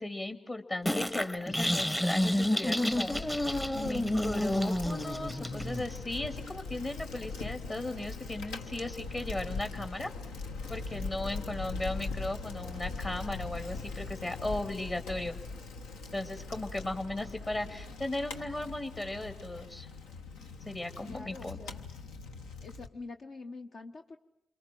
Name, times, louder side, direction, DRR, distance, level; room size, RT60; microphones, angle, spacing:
voice 1, 0.0-3.5 3.7-10.1 10.7-15.4 16.1-19.9 20.7-21.6, left 2 dB, 35° left, 7 dB, 2.4 m, -36 dB
sound 1, 0.9-5.8, left 1 dB, 15° left, 1.0 m, -30 dB
Bicycle, 2.9-22.9, left 4 dB, 85° left, 1.1 m, -41 dB
voice 2, 11.3-11.6 21.1-21.9 22.6-24.2, left 3 dB, 60° left, 4 dB, 1.0 m, -46 dB
28.5 x 23.0 x 7.7 m, 0.85 s
hypercardioid pair, 40°, 0 cm